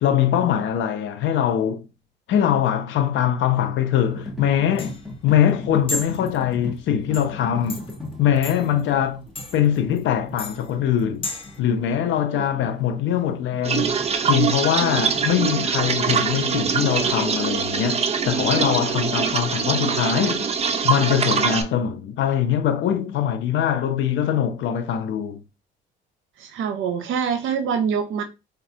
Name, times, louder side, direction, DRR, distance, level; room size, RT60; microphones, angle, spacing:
voice 1, 0.0-1.8 2.3-7.9 8.2-9.2 9.5-11.3 11.6-14.0 14.3-20.5 20.8-25.4, left 9 dB, 75° left, 0.5 m, -22 dB
sound 1, 4.0-17.1, left 2 dB, ahead, 1.0 m, -38 dB
sound 2, 4.2-11.6, left 2 dB, 25° left, 0.6 m, -36 dB
sound 3, 13.6-21.6, right 6 dB, 30° right, 0.5 m, -23 dB
voice 2, 26.4-28.2, right 7 dB, 80° right, 0.5 m, -25 dB
4.1 x 2.3 x 2.7 m
cardioid pair, 90°, 20 cm